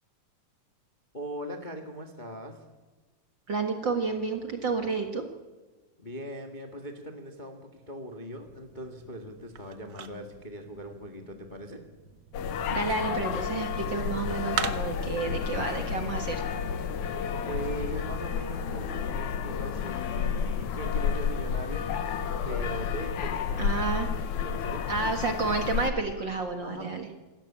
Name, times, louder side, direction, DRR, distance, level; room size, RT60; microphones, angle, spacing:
voice 1, 1.1-2.6 6.0-11.8 17.4-21.9 22.4-23.6 24.4-24.8 26.6-26.9, equal, 20° left, 4 dB, 1.2 m, -40 dB
voice 2, 3.5-5.2 12.7-16.4 23.6-24.1 24.9-27.1, right 4 dB, 45° right, 5 dB, 1.8 m, -30 dB
sound 1, 8.4-15.2, right 8 dB, 75° right, 1.0 m, -41 dB
sound 2, 12.3-25.9, left 7 dB, 65° left, 2.5 m, -31 dB
27.0 x 13.5 x 8.8 m, 1.3 s
omnidirectional pair, 3.7 m